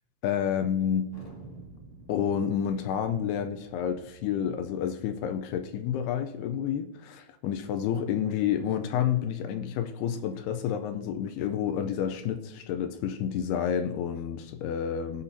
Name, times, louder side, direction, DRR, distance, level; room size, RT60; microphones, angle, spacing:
voice 1, 0.2-1.1 2.1-15.2, left 9 dB, 85° left, 8 dB, 2.6 m, -29 dB
Thunder, 1.1-6.3, right 2 dB, 45° left, 0.4 m, -50 dB
18.5 x 7.4 x 2.7 m, 0.83 s
omnidirectional pair, 4.6 m